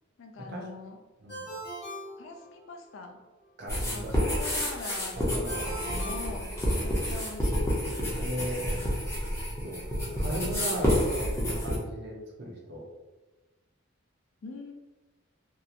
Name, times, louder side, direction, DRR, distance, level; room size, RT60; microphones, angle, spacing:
voice 1, 0.2-1.0 2.2-3.2 3.8-5.2 5.5-8.9 14.4-14.7, left 3 dB, 65° left, 4 dB, 0.3 m, -43 dB
Ringtone, 1.3-3.0 5.5-7.1, right 1 dB, 45° left, 1.0 m, -41 dB
voice 2, 3.6-4.3 5.1-5.7 6.3-6.4 8.2-8.8 9.3-9.8 10.2-12.8, right 1 dB, 50° right, -1 dB, 0.5 m, -37 dB
sound 1, 3.7-11.8, equal, 15° left, 0.5 m, -29 dB
2.8 x 2.1 x 2.4 m, 1.1 s
head